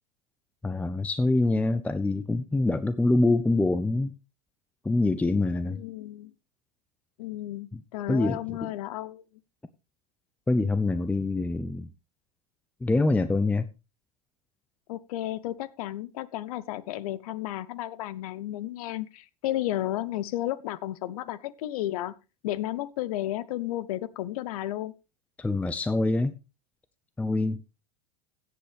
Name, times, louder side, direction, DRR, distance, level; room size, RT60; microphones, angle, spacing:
voice 1, 0.6-4.1 4.8-5.8 7.7-7.8 8.1-8.7 10.5-11.9 12.8-13.7 25.4-26.4 27.2-27.6, left 2 dB, 5° left, 0.5 m, -25 dB
voice 2, 5.7-6.3 7.2-9.2 14.9-22.1 22.4-24.9, left 14 dB, 70° left, 0.7 m, -33 dB
16.0 x 7.7 x 3.3 m
hypercardioid pair, 95°, 19 cm